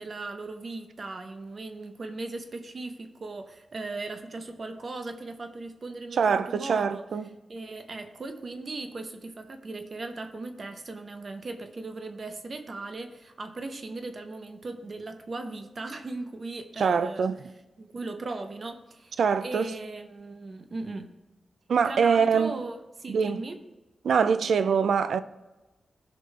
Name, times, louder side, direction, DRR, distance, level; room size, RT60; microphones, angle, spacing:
voice 1, 0.0-7.1 7.5-17.3 17.8-19.1 19.4-21.1 21.8-23.6, right 3 dB, 50° right, 0.8 m, -38 dB
voice 2, 6.2-7.3 16.8-17.4 19.2-19.7 21.7-22.6 23.1-23.4 24.0-25.2, right 6 dB, 80° right, 0.4 m, -24 dB
15.5 x 5.3 x 3.3 m
wide cardioid pair, 90°, 0 cm